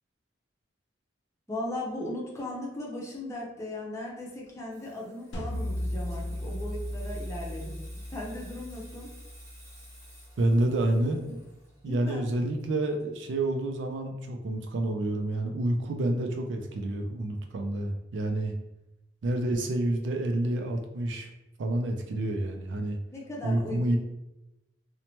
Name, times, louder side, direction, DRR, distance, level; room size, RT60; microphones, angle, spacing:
voice 1, 1.5-7.8 8.1-9.1 11.8-12.3 23.1-24.0, left 1 dB, 15° left, -4 dB, 0.7 m, -37 dB
Water tap faucet / Sink (filling or washing), 4.3-13.6 13.9-14.2, right 1 dB, 20° right, 1.3 m, -55 dB
sound 1, 5.3-10.4, left 1 dB, 80° left, 0.6 m, -36 dB
voice 2, 10.4-11.4 11.8-18.5 19.2-21.3 21.6-23.0 23.4-24.0, right 1 dB, 70° right, 4 dB, 0.3 m, -28 dB
2.9 x 2.1 x 2.8 m, 0.94 s
head